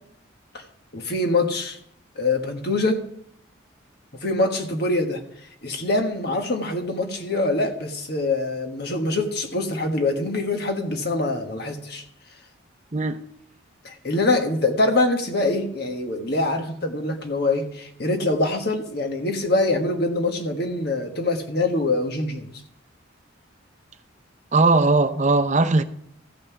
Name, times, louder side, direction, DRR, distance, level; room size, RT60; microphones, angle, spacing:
voice 1, 0.9-1.8 2.2-3.0 4.2-5.2 5.6-12.0 13.8-22.5, left 2 dB, 50° left, 1.5 m, -24 dB
voice 2, 24.5-25.8, right 3 dB, 35° right, 0.6 m, -18 dB
14.5 x 5.5 x 6.9 m
head